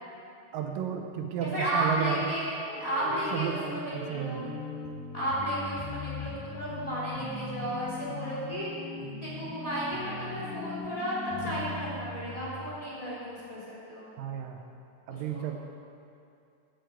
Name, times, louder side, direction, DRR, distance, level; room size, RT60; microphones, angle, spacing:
voice 1, 0.5-2.3 3.0-4.6 14.2-14.6 15.1-15.6, right 8 dB, 80° right, 3 dB, 2.4 m, -33 dB
voice 2, 1.4-3.8 4.0-4.5 5.1-8.8 9.2-13.6 13.9-14.1 15.3-15.5, right 1 dB, 10° left, -9 dB, 2.9 m, -33 dB
sound 1, 2.7-12.8, left 3 dB, 85° left, 2.7 m, -40 dB
11.0 x 6.7 x 7.9 m, 2.5 s
omnidirectional pair, 4.0 m